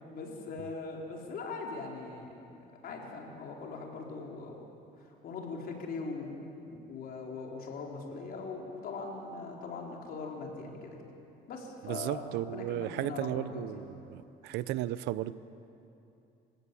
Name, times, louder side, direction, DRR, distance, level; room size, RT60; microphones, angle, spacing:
voice 1, 0.1-2.3 2.8-4.6 5.2-6.3 6.6-11.0 11.5-13.8, left 4 dB, 65° left, 0 dB, 4.5 m, -40 dB
voice 2, 11.8-15.3, right 14 dB, 85° right, 16 dB, 0.7 m, -35 dB
28.0 x 17.0 x 8.5 m, 2.7 s
cardioid pair, 110°, 17 cm